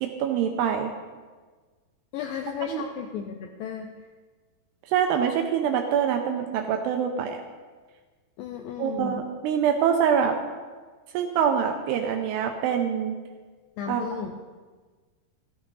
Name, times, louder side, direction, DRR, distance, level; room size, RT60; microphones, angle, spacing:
voice 1, 0.0-0.9 2.7-2.8 4.9-7.4 8.8-10.4 11.1-13.2 13.9-14.0, right 8 dB, 80° right, 4 dB, 2.7 m, -25 dB
voice 2, 2.1-3.9 8.4-9.2 13.8-14.3, left 7 dB, 80° left, 4 dB, 2.0 m, -34 dB
14.0 x 12.5 x 4.1 m, 1.4 s
omnidirectional pair, 4.8 m